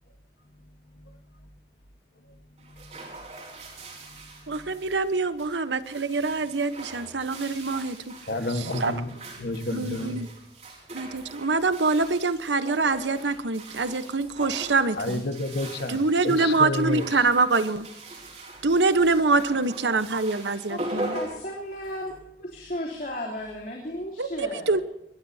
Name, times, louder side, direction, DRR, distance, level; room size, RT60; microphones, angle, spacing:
sound 1, 2.6-22.2, right 2 dB, 40° right, 4.6 m, -41 dB
voice 1, 4.5-8.0 8.6-8.9 9.7-10.3 10.9-15.2 15.9-17.9 18.6-21.2 24.2-24.8, right 3 dB, 90° right, 12 dB, 1.1 m, -25 dB
voice 2, 8.3-10.2 15.0-17.2, left 2 dB, 70° left, 8 dB, 1.5 m, -31 dB
voice 3, 20.7-22.1 22.4-24.8, left 1 dB, 50° left, -3 dB, 3.4 m, -34 dB
24.0 x 21.0 x 2.8 m, 0.86 s
head